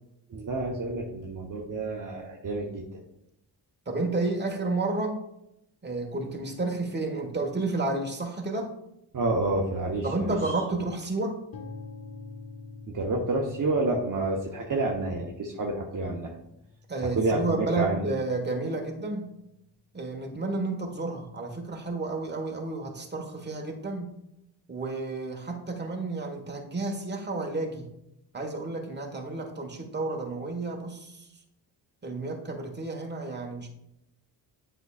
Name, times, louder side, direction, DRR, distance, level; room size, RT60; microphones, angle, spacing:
voice 1, 0.3-3.0 9.1-10.5 12.9-16.3 17.0-18.1, right 2 dB, 45° right, -1 dB, 1.0 m, -29 dB
voice 2, 3.9-5.2 5.8-8.7 10.0-11.4 16.9-19.3 19.9-24.1 24.7-27.9 28.3-31.2 32.0-33.7, right 2 dB, 25° right, 2 dB, 1.4 m, -31 dB
sound 1, 11.5-19.4, left 4 dB, 55° left, 1.5 m, -47 dB
8.0 x 5.6 x 2.4 m, 0.81 s
cardioid pair, 60°, 43 cm